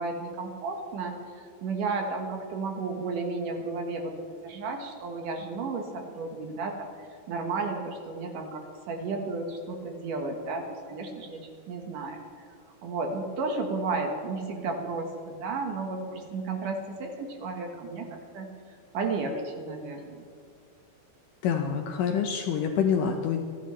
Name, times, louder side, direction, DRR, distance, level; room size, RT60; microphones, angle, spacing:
voice 1, 0.0-4.1 4.4-6.9 7.3-12.2 12.8-18.5 18.9-20.2, right 3 dB, 65° right, 3 dB, 2.6 m, -33 dB
voice 2, 21.4-23.4, left 7 dB, 75° left, 4 dB, 2.1 m, -26 dB
27.5 x 11.5 x 3.2 m, 2.3 s
omnidirectional pair, 4.5 m